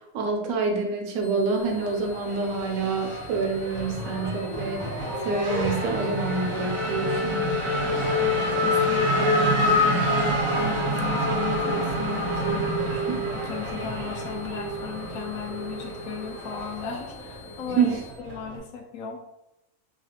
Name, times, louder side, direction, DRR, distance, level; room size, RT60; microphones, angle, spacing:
voice 1, 0.1-4.9 5.2-7.5 13.1-13.2 17.7-18.0, right 4 dB, 75° right, 2 dB, 1.0 m, -27 dB
sound 1, 1.2-18.1, left 10 dB, 60° left, 0.4 m, -50 dB
Race car auto racing / Accelerating revving vroom, 1.6-18.6, left 1 dB, 45° right, 0.5 m, -27 dB
voice 2, 8.0-19.2, left 7 dB, 75° left, 0 dB, 1.0 m, -37 dB
3.1 x 2.3 x 2.8 m, 0.91 s
omnidirectional pair, 1.5 m